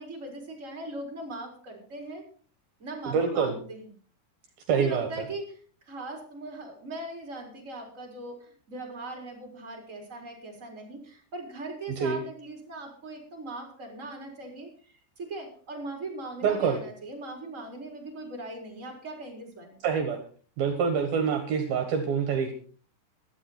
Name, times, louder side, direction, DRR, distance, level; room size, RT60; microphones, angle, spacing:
voice 1, 0.0-2.2 2.8-3.9 4.7-5.6 5.9-19.8, right 2 dB, 20° right, 1 dB, 4.3 m, -40 dB
voice 2, 3.0-3.5 4.7-5.1 12.0-12.2 16.4-16.8 19.8-20.2 20.6-22.5, right 6 dB, 65° right, 6 dB, 3.2 m, -26 dB
16.0 x 12.5 x 4.3 m, 0.42 s
omnidirectional pair, 4.7 m